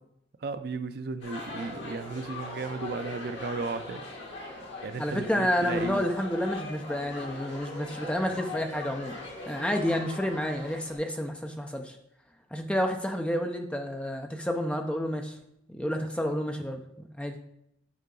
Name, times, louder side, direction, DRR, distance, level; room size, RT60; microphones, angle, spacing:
voice 1, 0.4-4.1 4.8-6.1, right 4 dB, 55° right, 11 dB, 0.4 m, -35 dB
sound 1, 1.2-11.0, left 2 dB, 80° left, 1.8 m, -40 dB
voice 2, 5.0-9.2 9.5-12.0 12.5-15.4 15.7-16.8 17.2-17.4, equal, 5° left, 4 dB, 0.5 m, -30 dB
8.3 x 4.7 x 3.8 m, 0.77 s
head